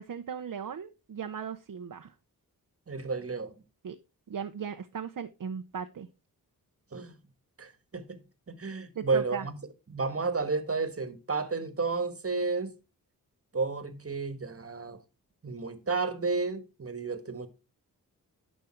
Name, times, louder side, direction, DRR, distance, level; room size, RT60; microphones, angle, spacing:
voice 1, 0.0-2.1 3.8-4.0 4.3-6.1 9.0-9.5, right 7 dB, 60° right, 0.8 m, -37 dB
voice 2, 2.9-3.5 6.9-7.1 7.6-8.2 8.5-9.5 9.9-12.7 13.5-15.0 15.4-17.5, right 4 dB, 40° right, 1.5 m, -32 dB
11.5 x 5.3 x 4.5 m
cardioid pair, 60°, 37 cm